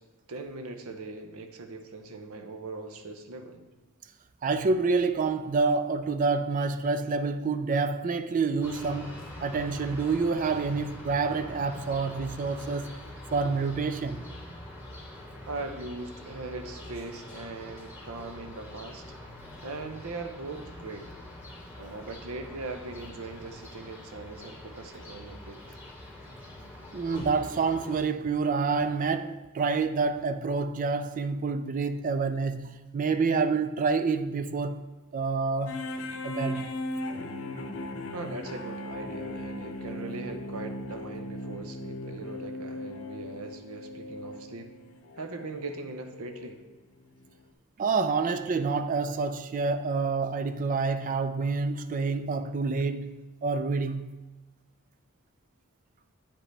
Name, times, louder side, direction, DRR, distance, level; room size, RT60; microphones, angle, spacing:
voice 1, 0.3-3.6 15.5-19.0 19.6-21.1 21.8-25.8 38.1-44.8 45.2-46.6, right 3 dB, 70° right, 0.7 m, -40 dB
voice 2, 4.4-12.9 13.3-14.2 26.9-34.8 35.1-35.9 36.2-36.7 47.8-53.1 53.4-54.1, right 4 dB, 35° right, 0.3 m, -28 dB
sound 1, 8.6-28.0, left 1 dB, 15° right, 2.0 m, -44 dB
sound 2, 35.7-46.5 47.2-47.3, left 1 dB, 65° left, 0.7 m, -38 dB
8.8 x 5.0 x 3.3 m
head